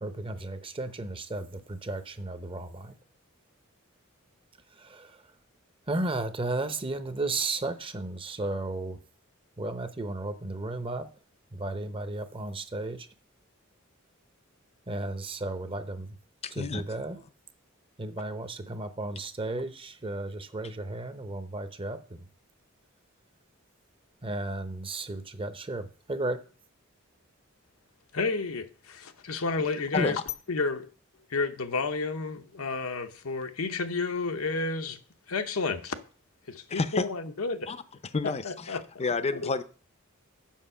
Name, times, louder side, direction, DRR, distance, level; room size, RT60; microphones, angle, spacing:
voice 1, 0.0-3.0 4.8-5.2 5.9-9.0 9.6-11.1 11.5-13.1 14.9-16.1 16.5-17.2 18.0-22.2 24.2-26.4, right 2 dB, 25° right, 0.7 m, -34 dB
voice 2, 16.4-16.8 29.9-30.2 36.7-37.1 37.7-37.8 38.1-39.6, left 3 dB, 30° left, 0.5 m, -29 dB
voice 3, 28.1-30.2 30.5-30.9 31.3-35.0 35.3-35.9 36.5-37.7 38.2-39.0 39.4-39.5, left 4 dB, 85° left, 0.9 m, -31 dB
7.4 x 6.6 x 5.6 m
head